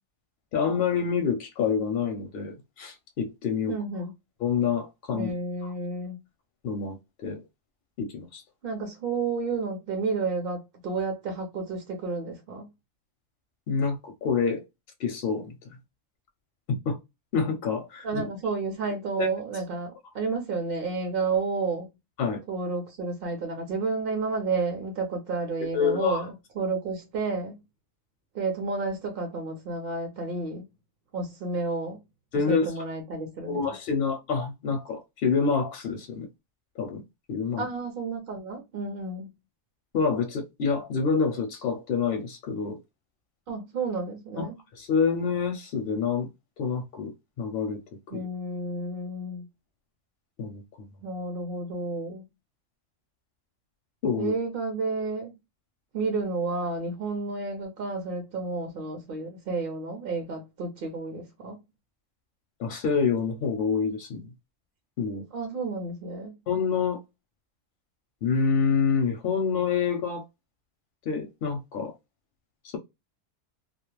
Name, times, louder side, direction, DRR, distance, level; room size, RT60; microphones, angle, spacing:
voice 1, 0.5-3.8 4.4-5.3 5.6-5.7 6.6-7.0 7.2-7.4 8.0-8.4 13.7-14.6 15.0-15.5 16.7-17.0 17.3-18.2 19.2-19.3 22.2-22.4 25.7-26.2 32.3-32.7 33.5-36.3 36.8-37.0 37.3-37.7 39.9-42.8 44.4-44.5 44.7-46.3 46.6-47.1 47.4-47.8 48.1-48.3 50.4-50.9 54.0-54.3 62.6-64.3 65.0-65.2 66.5-67.0 68.2-70.2 71.1-71.9, left 5 dB, 60° left, 0.6 m, -27 dB
voice 2, 3.7-4.1 5.1-6.2 8.6-12.7 18.0-21.9 22.5-26.3 26.6-27.6 28.3-30.6 31.1-32.0 32.5-33.7 37.6-39.3 43.5-44.6 48.1-49.4 51.0-52.2 54.2-55.3 55.9-61.6 65.3-66.3, right 3 dB, 60° right, 0.7 m, -31 dB
2.3 x 2.0 x 2.9 m
omnidirectional pair, 1.3 m